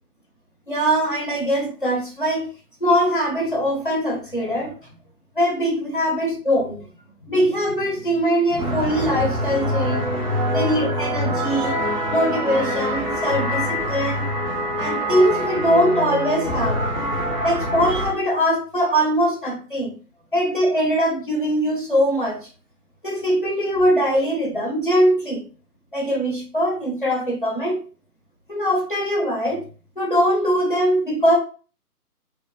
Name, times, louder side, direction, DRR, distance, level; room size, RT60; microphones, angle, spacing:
voice 1, 0.7-2.5 2.8-4.8 5.4-6.9 7.3-10.2 10.5-11.7 12.1-14.3 14.8-16.8 17.4-19.9 20.3-22.4 23.0-25.4 25.9-27.8 28.5-29.7 30.0-31.4, equal, 35° left, 0.4 m, -21 dB
sound 1, 8.6-18.1, equal, 30° right, 0.8 m, -25 dB
2.2 x 2.1 x 2.8 m
figure-of-eight pair, 150°, 47 cm